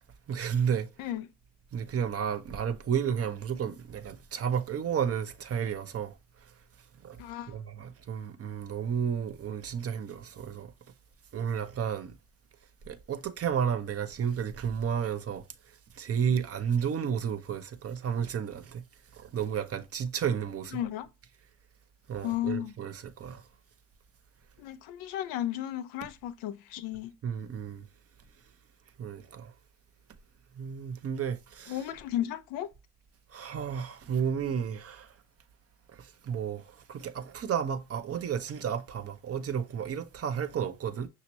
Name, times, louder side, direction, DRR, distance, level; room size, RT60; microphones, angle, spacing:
voice 1, 0.3-0.9 1.7-6.1 7.0-7.2 7.5-10.7 11.3-12.1 12.9-15.4 16.0-18.8 19.2-20.8 22.1-23.4 27.2-27.8 29.0-29.5 30.6-31.8 33.3-35.1 36.2-36.6 36.9-41.1, right 7 dB, 45° right, 0.7 m, -32 dB
voice 2, 7.2-7.6 20.7-21.1 22.2-22.7 24.6-27.1 31.7-32.7, left 12 dB, 80° left, 0.5 m, -34 dB
5.8 x 2.8 x 2.9 m
hypercardioid pair, 55°, 34 cm